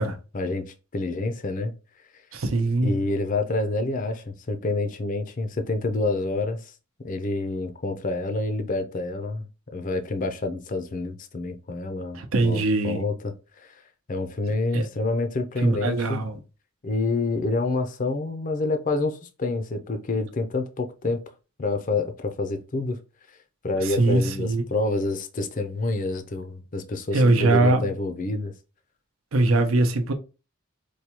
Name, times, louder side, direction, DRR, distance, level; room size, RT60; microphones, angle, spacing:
voice 1, 0.0-1.7 2.8-6.7 7.0-9.4 9.7-13.8 14.1-16.2 16.8-21.2 21.6-23.0 23.6-28.5, left 2 dB, 40° left, 0.5 m, -28 dB
voice 2, 2.3-3.0 12.1-13.1 14.7-14.9 15.6-16.4 23.8-24.6 27.1-27.9 29.3-30.1, right 2 dB, 75° right, 0.7 m, -22 dB
4.6 x 2.3 x 2.9 m
head